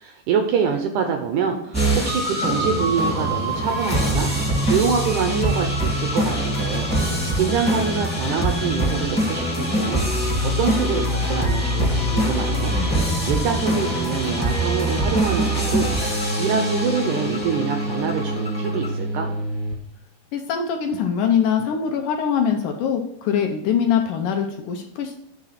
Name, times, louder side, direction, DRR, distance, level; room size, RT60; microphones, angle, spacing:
voice 1, 0.0-4.3 4.6-10.1 10.4-12.7 13.3-15.9 16.2-19.3, right 6 dB, 80° right, 5 dB, 1.8 m, -25 dB
sound 1, 1.7-19.7, equal, 5° left, 0.7 m, -23 dB
voice 2, 20.3-25.2, left 7 dB, 75° left, 3 dB, 2.0 m, -23 dB
8.9 x 3.7 x 5.7 m, 0.78 s
omnidirectional pair, 4.3 m